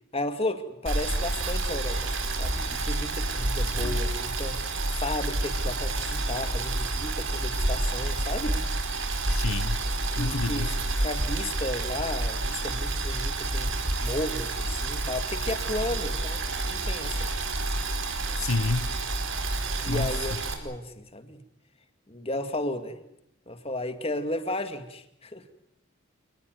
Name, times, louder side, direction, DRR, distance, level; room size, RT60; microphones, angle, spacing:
voice 1, 0.1-4.6 4.9-8.6 10.1-13.7 14.0-17.3 19.8-21.4 22.1-23.0 23.5-25.4, left 1 dB, 25° left, 2.1 m, -34 dB
Boiling, 0.9-20.5, right 2 dB, 65° right, 4.7 m, -29 dB
voice 2, 9.3-9.8 10.2-10.7 18.3-18.9 19.9-20.1, left 3 dB, 85° left, 1.1 m, -29 dB
28.0 x 20.0 x 9.4 m
head